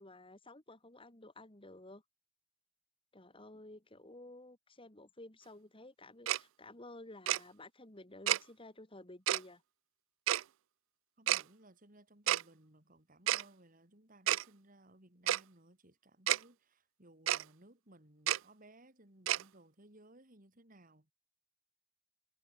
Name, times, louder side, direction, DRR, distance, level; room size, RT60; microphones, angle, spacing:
voice 1, 0.0-2.0 3.1-9.6, left 2 dB, 25° left, 2.7 m, -53 dB
Tick-tock, 6.3-6.4 7.3-7.4 8.3-8.4 9.3-9.4 10.3-10.4 11.3-11.4 12.3-12.4 13.3-13.4 14.3-14.4 15.3-15.4 16.3-16.4 17.3-17.4 18.3-18.4 19.3-19.4, right 13 dB, 85° right, 0.4 m, -30 dB
voice 2, 11.2-21.1, right 1 dB, 45° right, 4.4 m, -61 dB
head